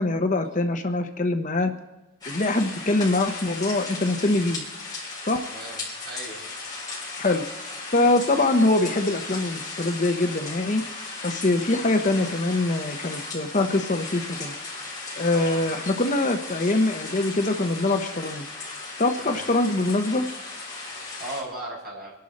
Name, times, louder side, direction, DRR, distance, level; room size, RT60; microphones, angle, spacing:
voice 1, 0.0-1.7 2.3-4.6 5.3-5.4 7.2-7.4 7.9-10.8 11.2-14.6 15.2-18.5 19.0-20.3, left 2 dB, 35° left, 6 dB, 0.8 m, -23 dB
sound 1, 2.2-21.4, left 3 dB, 20° left, 5.0 m, -36 dB
voice 2, 5.5-6.4 15.2-15.6 19.2-19.5 21.2-22.1, right 2 dB, 45° right, -4 dB, 5.8 m, -37 dB
26.0 x 11.5 x 4.2 m, 1.0 s
head